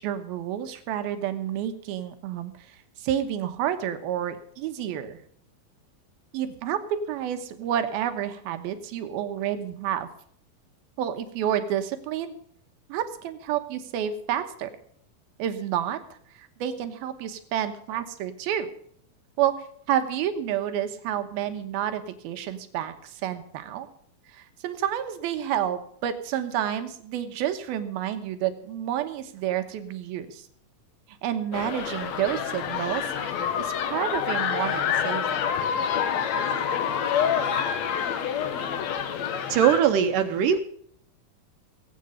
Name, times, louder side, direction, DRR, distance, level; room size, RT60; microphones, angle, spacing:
voice 1, 0.0-5.2 6.3-10.1 11.0-12.3 12.9-14.7 15.4-16.0 16.4-18.7 19.4-23.9 24.3-30.5 31.2-35.3, right 10 dB, 90° right, 9 dB, 3.0 m, -29 dB
sound 1, 31.5-39.8, left 8 dB, 65° left, 1.9 m, -27 dB
voice 2, 39.5-40.6, right 9 dB, 75° right, 9 dB, 2.2 m, -20 dB
20.5 x 8.7 x 5.1 m, 0.65 s
omnidirectional pair, 4.2 m